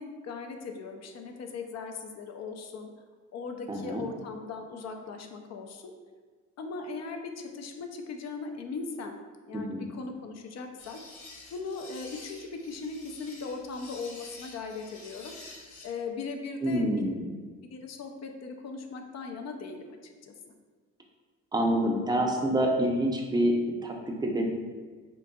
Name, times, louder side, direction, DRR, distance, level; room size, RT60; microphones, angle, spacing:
voice 1, 0.0-2.9 3.3-5.9 6.6-9.2 9.5-11.0 11.5-15.3 15.8-16.8 17.7-20.3, left 4 dB, 60° left, 4 dB, 0.5 m, -39 dB
voice 2, 3.7-4.0 9.5-9.8 16.6-17.2 21.5-24.5, right 1 dB, 15° right, 1 dB, 0.5 m, -27 dB
sound 1, 10.8-15.8, left 2 dB, 75° left, 1.0 m, -48 dB
3.8 x 3.5 x 2.3 m, 1.5 s
cardioid pair, 90°, 30 cm